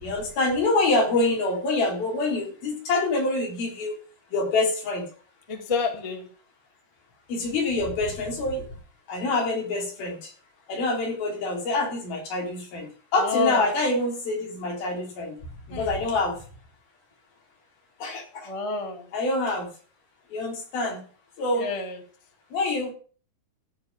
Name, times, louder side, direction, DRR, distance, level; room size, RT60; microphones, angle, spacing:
voice 1, 0.0-4.0 4.3-5.0 7.3-8.6 9.1-10.2 10.7-12.9 13.1-15.4 15.7-16.4 18.0-18.5 19.1-19.7 20.3-21.0 21.4-21.7 22.5-22.9, left 2 dB, 65° left, 0 dB, 5.5 m, -26 dB
voice 2, 5.5-6.3 13.2-13.7 15.7-16.0 18.4-19.1 21.5-22.0, left 5 dB, 25° left, 3 dB, 0.7 m, -29 dB
14.5 x 5.1 x 8.7 m, 0.40 s
omnidirectional pair, 4.5 m